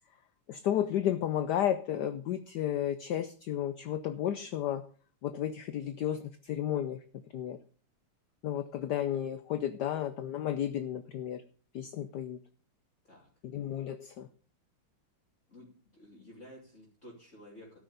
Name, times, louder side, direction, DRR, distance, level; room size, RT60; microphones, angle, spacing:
voice 1, 0.5-4.8 5.2-7.0 7.3-7.6 8.4-11.4 11.7-12.4 13.4-14.3, left 10 dB, 65° left, 11 dB, 1.1 m, -32 dB
voice 2, 15.5-17.8, left 1 dB, 35° left, -5 dB, 3.2 m, -52 dB
13.0 x 6.2 x 6.9 m, 0.43 s
omnidirectional pair, 2.3 m